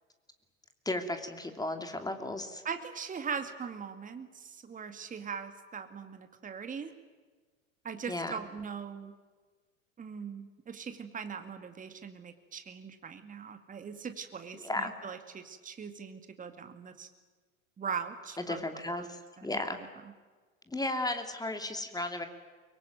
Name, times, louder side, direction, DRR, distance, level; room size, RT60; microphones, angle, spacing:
voice 1, 0.8-2.6 8.1-8.4 14.6-14.9 18.4-19.8 20.7-22.3, left 2 dB, 10° left, 7 dB, 2.7 m, -35 dB
voice 2, 2.6-6.9 7.8-9.1 10.0-17.1 17.8-18.6 19.0-19.1 19.4-19.6, right 6 dB, 20° right, 8 dB, 2.2 m, -40 dB
24.0 x 23.5 x 9.2 m, 1.4 s
figure-of-eight pair, 80°, 41 cm